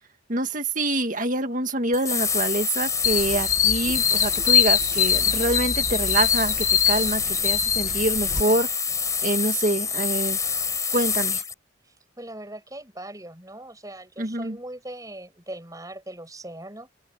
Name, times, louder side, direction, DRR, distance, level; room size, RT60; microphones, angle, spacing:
voice 1, 0.3-8.7 9.2-10.4 10.9-11.4 14.2-14.6, right 2 dB, 40° right, 1.9 m, -26 dB
sound 1, 1.9-11.5, left 6 dB, 15° left, 6.4 m, -27 dB
sound 2, 3.0-8.4, left 8 dB, 40° left, 2.1 m, -23 dB
voice 2, 11.9-16.9, right 1 dB, 20° right, 7.4 m, -40 dB
head